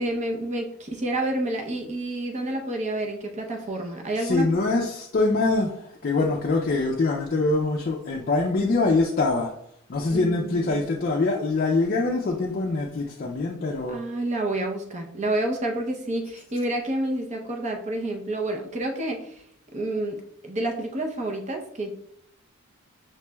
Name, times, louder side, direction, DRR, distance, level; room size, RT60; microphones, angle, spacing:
voice 1, 0.0-4.5 10.1-10.9 13.9-19.4 19.7-20.2 20.4-21.9, right 1 dB, 35° right, 0.6 m, -29 dB
voice 2, 4.2-9.5 9.9-14.0, left 3 dB, 40° left, 0.4 m, -24 dB
5.8 x 3.1 x 2.2 m
head